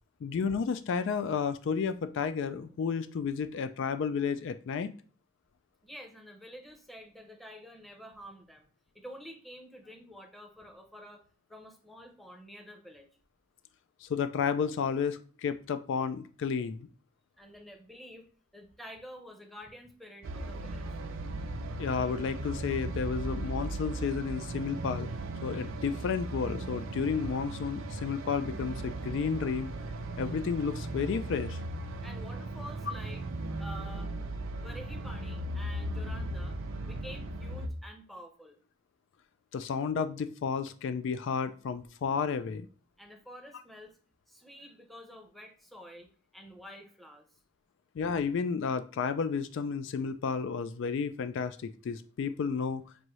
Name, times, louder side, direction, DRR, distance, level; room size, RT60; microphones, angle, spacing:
voice 1, 0.2-4.9 14.0-16.9 21.8-25.1 25.4-29.7 30.2-31.6 39.5-42.7 48.0-52.8, left 6 dB, 65° left, 11 dB, 0.3 m, -32 dB
voice 2, 5.8-8.7 8.9-11.2 11.5-13.1 17.4-20.8 32.0-33.2 33.6-34.1 34.6-36.6 36.8-38.6 43.0-44.0 44.3-47.4, equal, ahead, 3 dB, 0.7 m, -49 dB
sound 1, 20.2-37.7, right 2 dB, 70° right, 0.5 m, -37 dB
6.1 x 2.6 x 3.0 m, 0.42 s
head